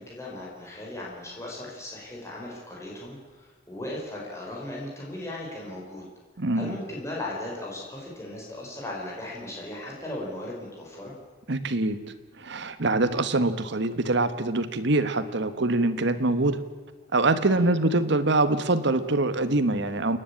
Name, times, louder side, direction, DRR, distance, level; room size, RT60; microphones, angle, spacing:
voice 1, 0.0-6.0 6.5-11.1 17.5-17.7, left 1 dB, 15° left, -4 dB, 5.2 m, -37 dB
voice 2, 6.4-6.8 11.5-12.0 12.4-16.6 17.1-20.2, right 2 dB, 65° right, 11 dB, 1.3 m, -24 dB
29.5 x 10.0 x 8.7 m, 1.4 s
head